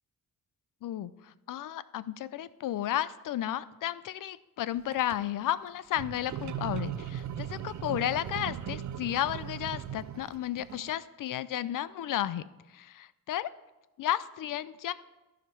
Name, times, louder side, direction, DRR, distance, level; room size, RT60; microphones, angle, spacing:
voice 1, 0.8-12.4 12.7-13.5 14.0-14.9, left 12 dB, 70° left, 16 dB, 0.5 m, -33 dB
sound 1, 4.8-5.2 5.9-10.9, right 10 dB, 55° right, 0.5 m, -38 dB
14.5 x 5.0 x 4.6 m, 1.1 s
wide cardioid pair, 150°, 34 cm